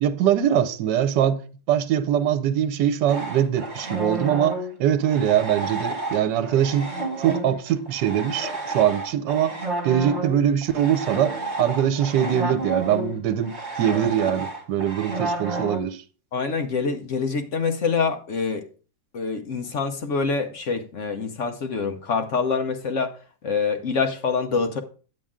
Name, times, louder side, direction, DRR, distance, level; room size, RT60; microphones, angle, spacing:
voice 1, 0.0-1.4 1.7-6.9 7.2-9.5 9.8-16.0, right 10 dB, 80° right, 1.3 m, -22 dB
sound 1, 3.1-15.8, right 2 dB, 40° right, 2.2 m, -31 dB
voice 2, 16.3-18.7 19.1-23.2 23.4-24.8, left 5 dB, 55° left, 0.9 m, -25 dB
8.6 x 8.6 x 3.6 m
omnidirectional pair, 1.9 m